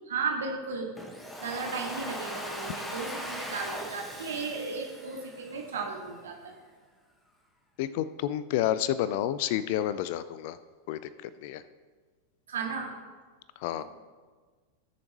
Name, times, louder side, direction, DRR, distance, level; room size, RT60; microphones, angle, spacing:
voice 1, 0.1-0.9 1.4-6.5 12.5-12.9, right 4 dB, 65° right, 1 dB, 1.9 m, -35 dB
Domestic sounds home sounds, 1.0-5.9, equal, 10° left, 1.4 m, -39 dB
voice 2, 7.8-10.6 10.9-11.6 13.6-13.8, left 12 dB, 50° left, 15 dB, 0.5 m, -30 dB
19.0 x 7.1 x 3.0 m, 1.5 s
figure-of-eight pair, 90°, 0 cm